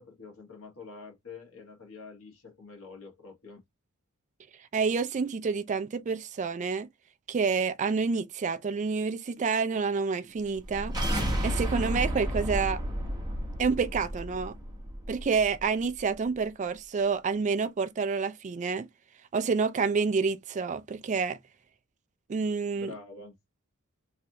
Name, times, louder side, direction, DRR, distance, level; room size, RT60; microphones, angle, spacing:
voice 1, 0.0-3.6 22.7-23.3, left 4 dB, 75° left, 1.4 m, -46 dB
voice 2, 4.7-6.9 7.3-10.9 11.4-12.8 13.6-14.6 15.1-18.9 19.3-21.4 22.3-22.9, right 5 dB, 35° right, 0.3 m, -28 dB
sound 1, 10.5-15.6, equal, 20° right, 0.9 m, -32 dB
3.2 x 2.4 x 2.7 m
head